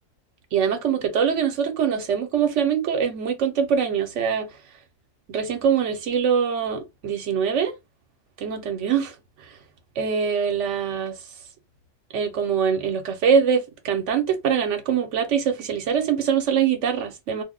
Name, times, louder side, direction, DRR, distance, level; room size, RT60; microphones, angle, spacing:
voice 1, 0.5-4.5 5.3-7.7 8.4-9.2 9.5-9.6 10.0-11.2 12.1-17.4, right 7 dB, 75° right, 1.0 m, -23 dB
2.5 x 2.1 x 3.6 m
omnidirectional pair, 1.3 m